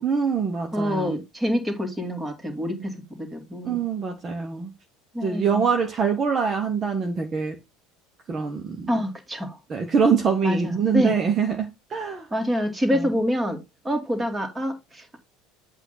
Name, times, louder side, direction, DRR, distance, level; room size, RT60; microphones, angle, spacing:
voice 1, 0.0-1.2 2.7-2.8 3.6-4.7 5.2-7.6 8.3-8.9 9.7-12.3 12.9-13.1, right 6 dB, 35° right, 1.1 m, -24 dB
voice 2, 0.7-3.8 5.1-5.7 8.9-9.6 10.4-11.2 12.3-13.6 13.8-15.2, equal, 15° right, 2.1 m, -26 dB
8.1 x 2.7 x 5.7 m
figure-of-eight pair, 70°, 0 cm